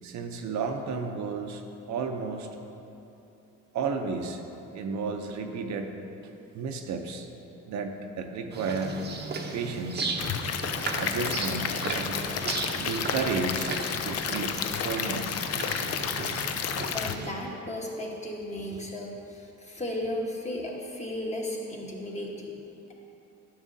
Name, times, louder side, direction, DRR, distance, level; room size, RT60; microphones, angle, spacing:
voice 1, 0.0-2.6 3.7-4.4 4.7-5.9 6.5-7.3 7.7-9.0 9.5-10.2 10.9-13.8 14.0-15.4, right 4 dB, 70° right, 4 dB, 0.7 m, -33 dB
sound 1, 8.5-17.3, right 3 dB, 35° right, 0.7 m, -35 dB
Stream / Liquid, 10.2-17.2, left 7 dB, 55° left, 0.5 m, -31 dB
voice 2, 16.9-22.5, left 1 dB, 25° left, -2 dB, 1.2 m, -35 dB
11.0 x 6.1 x 2.7 m, 2.8 s
cardioid pair, 90°, 30 cm